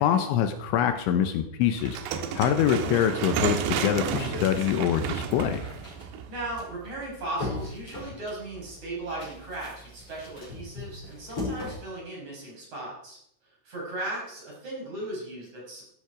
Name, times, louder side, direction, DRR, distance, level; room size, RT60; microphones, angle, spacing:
voice 1, 0.0-2.0 2.4-5.6, left 9 dB, 80° left, 8 dB, 3.1 m, -24 dB
sound 1, 1.8-6.9, right 8 dB, 70° right, 3.0 m, -32 dB
sound 2, 4.0-11.8, left 2 dB, 30° left, 6.4 m, -39 dB
voice 2, 6.3-13.2 13.6-15.8, right 2 dB, 35° right, -3 dB, 6.3 m, -37 dB
15.0 x 12.5 x 5.1 m, 0.70 s
omnidirectional pair, 5.7 m